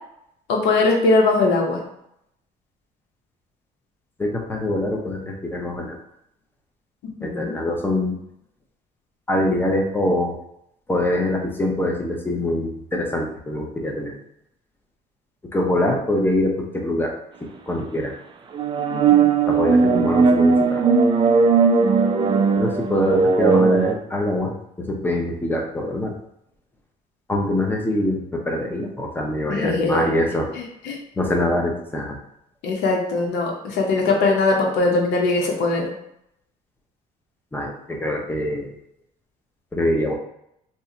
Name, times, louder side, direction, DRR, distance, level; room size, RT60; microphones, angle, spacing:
voice 1, 0.5-1.8 7.2-7.6 18.9-19.3 29.5-30.1 30.5-31.0 32.6-35.9, left 3 dB, 85° left, -1 dB, 0.8 m, -21 dB
voice 2, 4.2-6.0 7.2-8.2 9.3-10.3 10.9-14.1 15.5-17.1 17.4-18.1 19.5-20.8 22.6-24.5 24.8-26.1 27.3-30.5 31.2-32.2 37.5-38.7 39.7-40.1, left 1 dB, 10° left, 1 dB, 0.6 m, -24 dB
sound 1, 18.5-23.9, right 5 dB, 30° right, 0.3 m, -17 dB
2.7 x 2.2 x 3.6 m, 0.78 s
cardioid pair, 110°, 17 cm